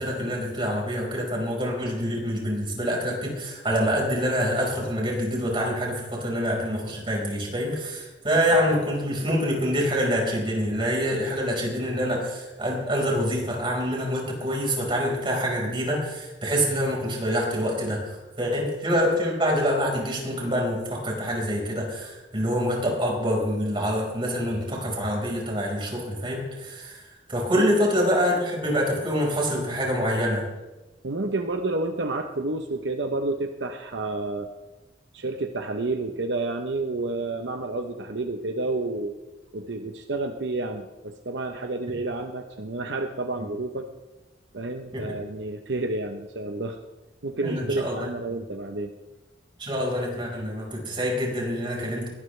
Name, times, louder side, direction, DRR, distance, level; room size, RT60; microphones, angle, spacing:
voice 1, 0.0-30.4 41.9-42.0 44.9-45.2 47.4-47.9 49.6-52.1, equal, 30° right, -1 dB, 4.9 m, -26 dB
voice 2, 31.0-34.5 35.1-39.1 39.5-43.9 44.5-46.8 47.2-48.9, right 2 dB, 75° right, 5 dB, 0.9 m, -30 dB
21.5 x 18.5 x 3.3 m, 1.1 s
head